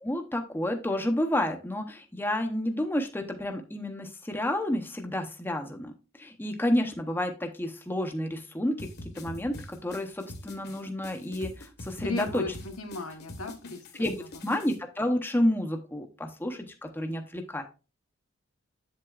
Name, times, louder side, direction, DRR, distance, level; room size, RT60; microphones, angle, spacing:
voice 1, 0.0-5.9 6.2-8.9 9.1-12.4 14.0-14.1 14.4-17.6, left 1 dB, 10° left, 5 dB, 0.7 m, -30 dB
sound 1, 8.8-14.8, left 1 dB, 50° left, 1.2 m, -44 dB
voice 2, 12.0-14.3, left 2 dB, 85° left, 5 dB, 1.2 m, -36 dB
7.6 x 7.4 x 2.4 m, 0.31 s
head